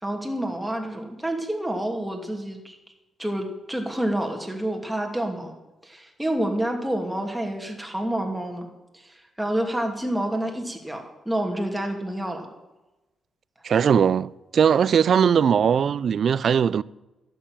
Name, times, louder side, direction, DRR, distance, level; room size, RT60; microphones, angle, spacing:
voice 1, 0.0-2.8 3.2-5.5 5.8-8.7 8.9-12.5, right 1 dB, 5° right, 2.7 m, -28 dB
voice 2, 13.6-16.8, right 7 dB, 60° right, 0.4 m, -20 dB
12.0 x 7.0 x 9.0 m
cardioid pair, 80°, 0 cm